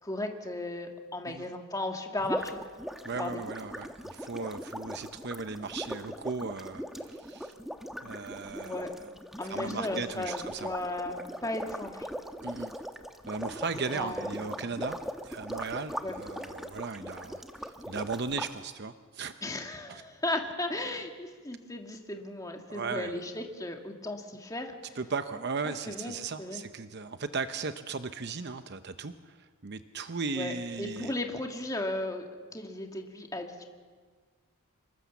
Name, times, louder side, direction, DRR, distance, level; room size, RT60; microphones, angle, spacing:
voice 1, 0.0-2.6 3.2-3.3 8.6-8.9 9.4-12.1 13.9-14.4 16.0-16.1 19.4-25.0 25.9-26.6 30.4-32.2 32.5-33.6, left 2 dB, 15° left, 3 dB, 1.9 m, -35 dB
sound 1, 2.2-18.5, equal, ahead, 1.1 m, -40 dB
voice 2, 3.0-7.5 8.0-9.1 9.5-10.7 12.4-12.7 13.3-15.0 15.2-19.4 19.9-20.0 22.7-23.2 25.0-31.1, right 4 dB, 50° right, 10 dB, 0.8 m, -37 dB
26.0 x 22.0 x 7.2 m, 1.5 s
head